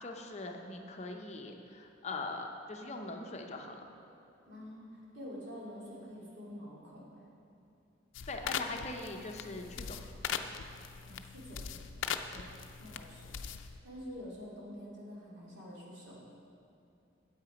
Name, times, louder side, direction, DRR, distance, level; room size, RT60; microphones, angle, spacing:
voice 1, 0.0-3.8 8.3-10.0, left 2 dB, 35° left, 3 dB, 0.6 m, -41 dB
voice 2, 4.4-7.0 11.1-11.7 12.3-12.5 12.8-13.3 13.8-16.2, equal, 65° right, -5 dB, 2.4 m, -47 dB
sound 1, 8.1-13.8, left 7 dB, 80° left, 0.4 m, -40 dB
8.7 x 8.1 x 5.1 m, 2.6 s
head